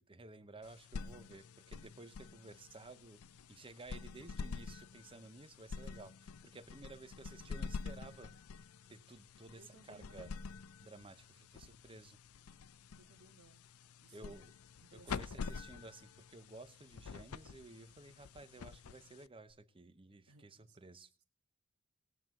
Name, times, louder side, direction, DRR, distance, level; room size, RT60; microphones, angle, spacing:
voice 1, 0.0-3.2 3.5-8.3 8.9-10.3 10.8-12.2 14.1-14.5 14.9-21.1, right 3 dB, 25° right, 12 dB, 0.8 m, -54 dB
sound 1, 0.6-19.5, left 5 dB, 80° left, 0.5 m, -48 dB
voice 2, 9.6-10.4 13.0-13.6 14.0-14.3 14.8-15.3 20.3-20.8, right 3 dB, 80° right, 6 dB, 1.8 m, -62 dB
20.0 x 7.6 x 3.7 m, 0.39 s
head